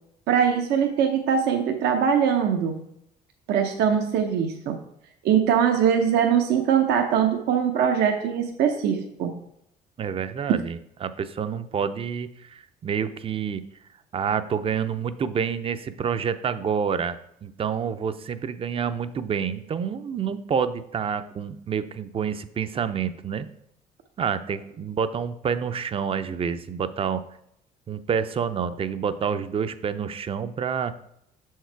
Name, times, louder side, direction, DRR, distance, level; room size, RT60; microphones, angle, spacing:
voice 1, 0.3-2.8 3.5-4.8 5.2-9.4, right 8 dB, 75° right, 4 dB, 0.7 m, -22 dB
voice 2, 10.0-13.6 14.1-23.5 24.2-27.2 27.9-30.9, right 7 dB, 35° right, 12 dB, 0.5 m, -28 dB
6.5 x 4.7 x 4.5 m, 0.75 s
cardioid pair, 110°, 17 cm